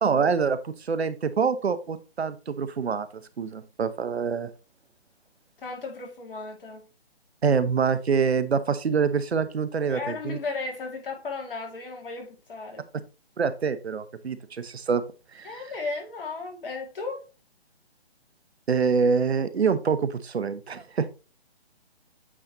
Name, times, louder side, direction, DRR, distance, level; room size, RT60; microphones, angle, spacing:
voice 1, 0.0-4.5 7.4-10.4 13.4-15.0 15.3-15.5 18.7-21.1, right 5 dB, 75° right, 0.9 m, -25 dB
voice 2, 5.6-6.9 9.9-12.9 15.4-17.2, left 3 dB, 55° left, 2.6 m, -35 dB
8.6 x 4.2 x 3.0 m
figure-of-eight pair, 145°, 32 cm